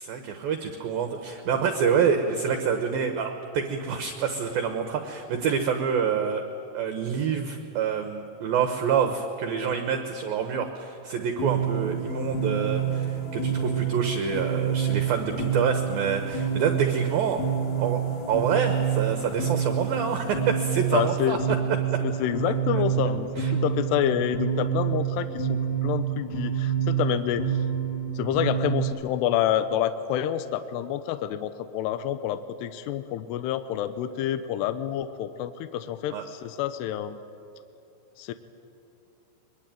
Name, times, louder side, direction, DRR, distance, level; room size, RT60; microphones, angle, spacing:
voice 1, 0.0-6.4 6.7-17.4 17.8-18.0 18.3-21.4 23.4-23.5 36.1-36.2, right 7 dB, 75° right, 6 dB, 2.2 m, -27 dB
sound 1, 11.4-28.9, right 8 dB, 45° left, 3.1 m, -28 dB
voice 2, 20.9-21.6 22.0-27.5 28.2-37.2 38.2-38.3, left 11 dB, 85° left, 11 dB, 2.4 m, -28 dB
22.5 x 22.5 x 9.1 m, 2.7 s
omnidirectional pair, 5.6 m